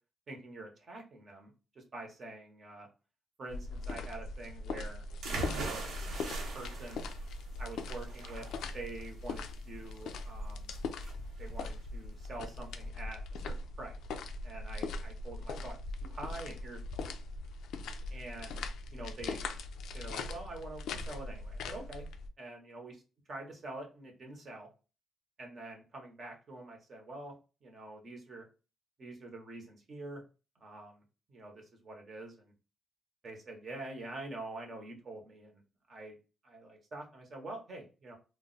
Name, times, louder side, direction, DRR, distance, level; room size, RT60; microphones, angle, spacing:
voice 1, 0.3-1.5 1.7-2.9 3.4-5.0 6.5-7.1 7.6-8.5 8.7-10.7 11.4-13.9 14.4-17.0 18.1-18.6 18.9-19.4 19.9-22.1 22.4-23.0 23.3-24.7 25.4-27.3 27.6-28.4 29.0-30.2 30.6-31.0 31.3-32.5 33.2-35.6 35.9-36.2 36.4-38.1, right 2 dB, 35° right, 1 dB, 0.8 m, -46 dB
sound 1, 3.5-22.3, left 3 dB, 80° left, 0.3 m, -40 dB
sound 2, 5.2-12.9, right 3 dB, 80° right, 0.8 m, -42 dB
2.3 x 2.0 x 3.8 m, 0.33 s
cardioid pair, 170°, 0 cm